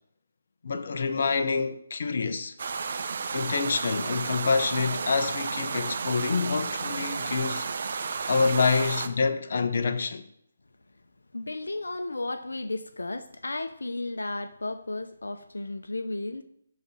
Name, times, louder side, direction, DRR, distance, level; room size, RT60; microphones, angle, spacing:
voice 1, 0.6-2.5 3.3-7.7 8.3-10.2, left 4 dB, 55° left, 1.0 m, -27 dB
sound 1, 2.6-9.1, right 5 dB, 55° right, 0.9 m, -32 dB
sound 2, 3.3-8.2, right 1 dB, 90° right, 1.1 m, -46 dB
voice 2, 11.3-16.4, left 2 dB, 85° left, 0.8 m, -34 dB
12.0 x 4.3 x 7.0 m
figure-of-eight pair, 155°, 0 cm